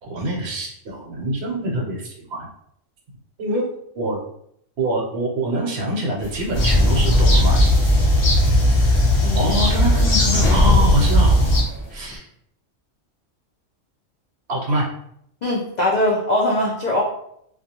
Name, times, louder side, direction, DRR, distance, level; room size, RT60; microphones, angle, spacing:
voice 1, 0.0-2.5 3.4-4.2 4.8-7.7 9.4-11.4 11.9-12.2 14.5-14.9, right 1 dB, 60° right, -2 dB, 0.9 m, -25 dB
sound 1, 6.2-12.2, left 1 dB, 20° left, 0.8 m, -27 dB
sound 2, 6.5-11.6, left 1 dB, 50° left, 0.8 m, -17 dB
voice 2, 9.2-9.6 15.4-17.0, left 1 dB, 85° left, -4 dB, 0.3 m, -21 dB
2.3 x 2.3 x 2.8 m, 0.71 s
omnidirectional pair, 1.3 m